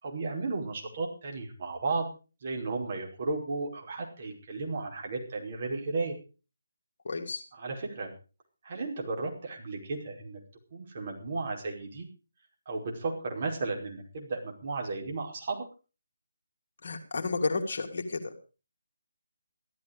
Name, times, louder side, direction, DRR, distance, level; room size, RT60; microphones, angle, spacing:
voice 1, 0.0-2.1 2.4-6.1 7.5-8.1 8.6-10.4 10.7-12.1 12.7-15.7, right 3 dB, 40° right, 0 dB, 5.2 m, -34 dB
voice 2, 7.0-7.4 16.8-18.3, left 3 dB, 50° left, 3 dB, 2.6 m, -32 dB
15.0 x 13.0 x 5.2 m, 0.35 s
figure-of-eight pair, 150°, 0 cm